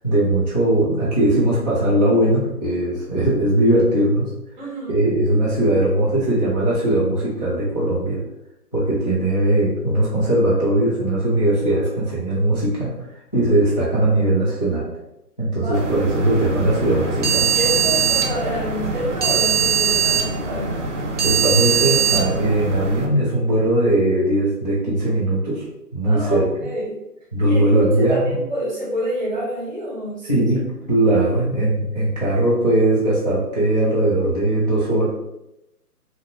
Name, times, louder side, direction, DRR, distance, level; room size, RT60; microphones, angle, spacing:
voice 1, 0.0-4.3 4.9-8.2 8.7-12.9 13.3-14.9 15.4-17.5 21.2-25.7 25.9-26.5 27.3-28.3 30.3-30.6 30.9-35.1, right 1 dB, 30° left, -9 dB, 0.4 m, -19 dB
voice 2, 4.6-4.9 15.6-16.0 17.5-20.7 26.0-26.9 27.4-30.4, equal, 30° right, -6 dB, 0.9 m, -27 dB
sound 1, 15.7-23.1, right 6 dB, 50° right, 0.5 m, -21 dB
2.5 x 2.1 x 2.8 m, 0.86 s
hypercardioid pair, 160°, 47 cm